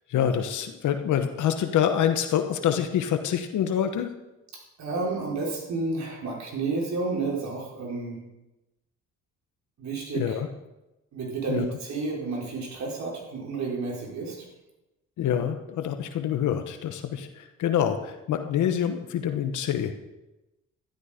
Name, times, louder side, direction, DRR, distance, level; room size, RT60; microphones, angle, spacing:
voice 1, 0.1-4.1 10.1-10.5 11.5-11.7 15.2-20.0, left 9 dB, 75° left, 7 dB, 1.1 m, -26 dB
voice 2, 4.5-8.2 9.8-10.4 11.1-14.5, right 3 dB, 65° right, -2 dB, 4.6 m, -31 dB
13.0 x 11.5 x 5.1 m, 0.99 s
cardioid pair, 90°, 30 cm